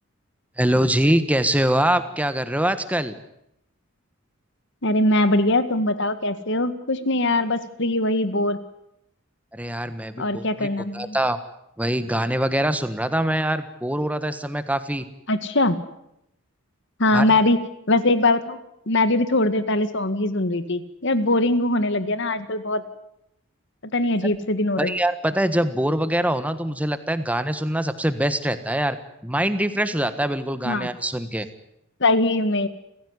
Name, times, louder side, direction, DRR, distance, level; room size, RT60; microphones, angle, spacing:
voice 1, 0.6-3.1 9.5-10.7 10.9-11.4 11.8-15.1 17.1-17.3 24.2-24.3 24.8-29.0 29.2-31.5, right 1 dB, 5° right, 11 dB, 1.5 m, -23 dB
voice 2, 4.8-8.6 10.2-11.2 15.3-15.8 17.0-17.6 17.9-18.6 18.9-22.8 23.9-24.9 30.7-30.9 32.0-32.7, left 2 dB, 55° left, 12 dB, 1.9 m, -21 dB
29.0 x 16.0 x 9.8 m, 0.82 s
head